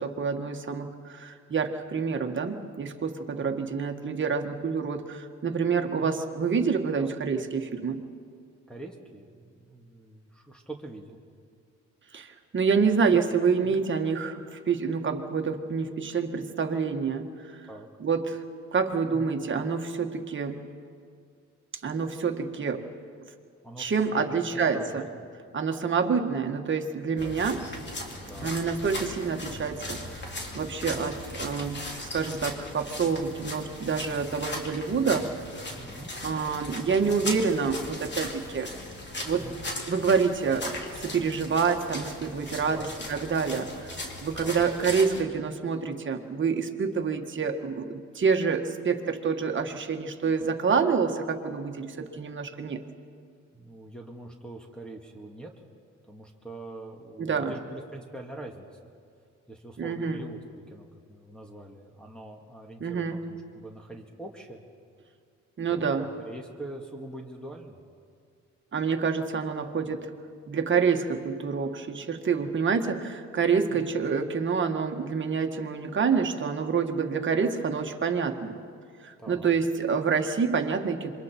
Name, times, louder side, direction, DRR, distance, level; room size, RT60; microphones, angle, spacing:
voice 1, 0.0-8.0 12.1-17.6 18.0-18.4 18.7-20.6 21.8-22.8 23.8-25.0 25.5-27.6 28.4-35.3 36.2-38.7 39.3-39.4 39.9-43.7 44.2-52.8 57.2-57.5 59.8-60.2 62.8-63.2 65.6-66.1 68.7-70.1 70.5-78.6 79.0-81.1, right 5 dB, 40° right, 4 dB, 1.8 m, -27 dB
voice 2, 5.8-6.2 7.0-7.1 8.7-11.2 13.6-13.8 17.7-17.9 19.1-19.4 23.6-25.2 27.2-27.4 27.7-27.9 28.3-28.6 30.9-31.1 35.1-35.3 35.8-36.1 39.4-39.6 42.6-42.9 43.4-43.7 44.4-44.6 53.5-55.5 56.1-58.9 59.5-64.6 65.7-67.8 73.7-73.9 79.2-79.5, right 2 dB, 5° left, -2 dB, 2.1 m, -43 dB
sound 1, 27.2-45.2, left 2 dB, 35° left, 3.0 m, -38 dB
27.0 x 23.5 x 4.6 m, 2.3 s
cardioid pair, 90°, 30 cm